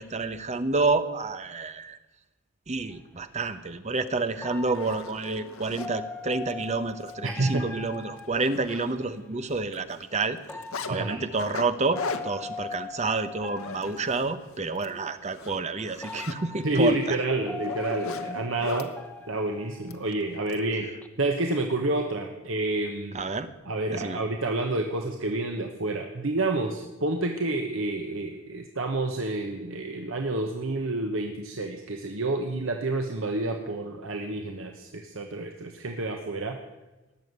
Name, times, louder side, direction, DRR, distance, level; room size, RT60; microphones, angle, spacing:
voice 1, 0.0-2.0 2.7-10.4 10.9-17.3 20.8-21.0 23.1-23.5 23.9-24.2, right 3 dB, 35° right, 11 dB, 0.9 m, -29 dB
sound 1, 2.9-3.1 4.4-9.2 10.4-14.7 15.5-15.6 16.0-20.4 20.7-21.1, left 3 dB, 5° left, 1.0 m, -41 dB
Zipper (clothing), 4.1-4.2 4.6-5.9 6.5-6.7 7.0-7.1 7.5-7.6 7.9-9.3 9.5-10.9 11.4-14.3 14.6-14.9 15.3-18.9 19.9-20.6, left 4 dB, 85° left, 1.1 m, -39 dB
voice 2, 7.2-7.7 10.8-11.2 16.6-18.9 19.3-20.9 21.2-23.2 23.7-36.6, right 2 dB, 70° right, 3 dB, 1.3 m, -29 dB
19.0 x 7.2 x 9.4 m, 1.1 s
head